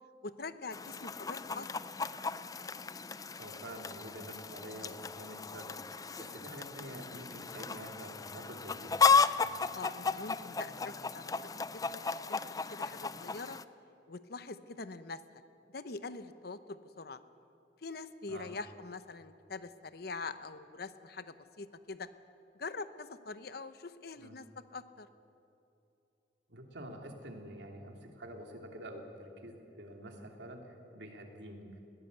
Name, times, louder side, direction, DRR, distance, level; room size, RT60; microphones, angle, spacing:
voice 1, 0.2-1.9 7.5-7.6 9.7-12.4 12.7-13.6 14.1-15.4 15.7-17.2 17.8-22.1 22.5-25.1, left 3 dB, 60° left, 12 dB, 0.9 m, -44 dB
Chicken rooster, 0.7-13.6, left 5 dB, 20° left, 0.5 m, -34 dB
voice 2, 3.4-5.8 6.2-9.0 18.3-18.5 24.2-24.3 26.5-31.8, right 1 dB, 75° right, 3 dB, 2.9 m, -47 dB
21.0 x 17.0 x 8.2 m, 2.9 s
head